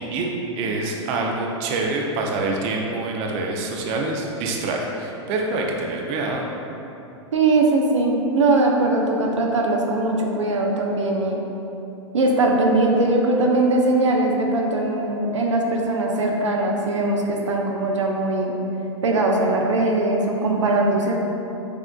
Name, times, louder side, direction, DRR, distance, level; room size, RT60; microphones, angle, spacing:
voice 1, 0.1-6.4, right 3 dB, 40° right, 0 dB, 0.5 m, -26 dB
voice 2, 7.3-11.4 12.1-18.5 19.0-21.1, right 2 dB, 90° right, 0 dB, 0.5 m, -20 dB
6.1 x 2.4 x 2.2 m, 2.9 s
hypercardioid pair, 110°, 15 cm